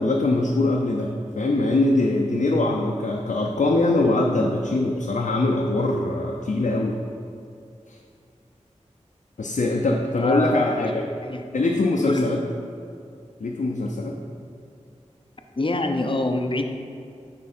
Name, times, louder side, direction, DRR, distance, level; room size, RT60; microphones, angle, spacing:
voice 1, 0.0-7.0 7.9-8.0 9.4-11.0 11.5-12.4 13.4-14.2, left 2 dB, 80° left, 0 dB, 0.6 m, -22 dB
voice 2, 10.1-10.9 11.2-11.5 12.1-12.4 14.4-14.6 15.6-16.6, left 2 dB, 45° left, 5 dB, 0.7 m, -25 dB
8.6 x 4.6 x 4.3 m, 2.5 s
wide cardioid pair, 40°, 13 cm